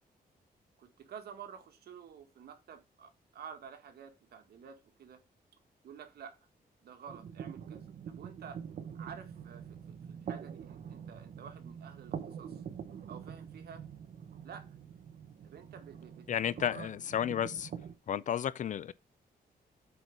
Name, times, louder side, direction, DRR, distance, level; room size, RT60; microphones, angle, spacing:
voice 1, 0.8-5.2 5.8-6.3 6.8-8.6 8.9-12.6 13.1-13.8 14.4-14.7 15.4-16.3 16.6-16.9, right 7 dB, 80° right, 1.8 m, -50 dB
sound 1, 7.1-17.9, right 7 dB, 60° right, 0.9 m, -45 dB
voice 2, 16.3-17.7 18.1-18.9, left 9 dB, 50° left, 0.4 m, -32 dB
8.1 x 4.6 x 5.4 m
wide cardioid pair, 150°, 16 cm